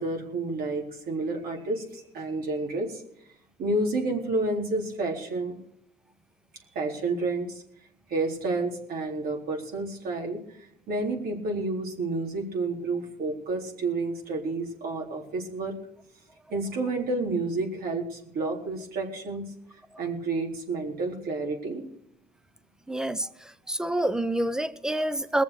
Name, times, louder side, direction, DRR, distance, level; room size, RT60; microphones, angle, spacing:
voice 1, 0.0-3.0 3.6-5.6 6.7-7.6 8.1-15.7 16.5-19.5 20.0-21.8, right 2 dB, 60° right, 4.0 m, -30 dB
voice 2, 22.9-23.3 23.7-25.4, right 1 dB, 5° right, 0.8 m, -27 dB
21.0 x 7.2 x 6.6 m
cardioid pair, 110°, 17 cm